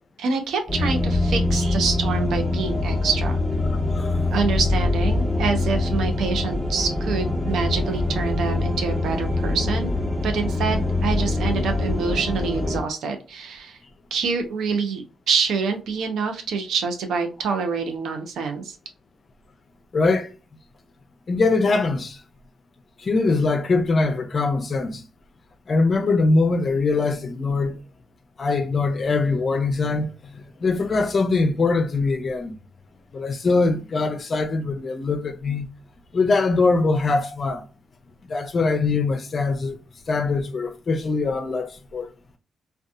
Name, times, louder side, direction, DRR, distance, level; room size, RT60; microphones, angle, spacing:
voice 1, 0.2-3.4 4.3-9.9 10.2-13.8 14.1-18.8, right 5 dB, 80° right, 0.5 m, -26 dB
sound 1, 0.7-12.8, left 2 dB, ahead, 0.9 m, -24 dB
voice 2, 3.7-4.2 19.9-20.3 21.3-22.2 23.0-25.0 25.7-27.8 28.4-32.6 33.1-35.7 36.1-37.6 38.2-39.8 40.1-42.1, left 3 dB, 50° left, 0.5 m, -22 dB
2.6 x 2.3 x 2.3 m
supercardioid pair, 55°, 0 cm